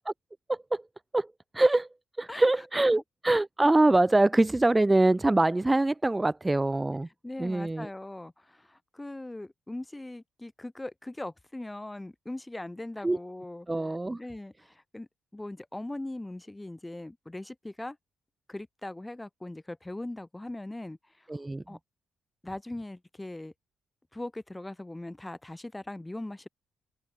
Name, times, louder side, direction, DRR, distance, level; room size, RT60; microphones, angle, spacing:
voice 1, 0.5-0.8 1.1-1.9 2.2-7.1 7.4-7.9 13.0-13.2 13.7-14.2 21.3-21.8, right 2 dB, 15° right, 0.8 m, -24 dB
voice 2, 7.2-13.7 14.2-18.0 18.5-21.0 21.7-21.8 22.4-23.5 24.1-26.5, left 1 dB, 10° left, 4.9 m, -40 dB
open air
cardioid pair, 90°, 0 cm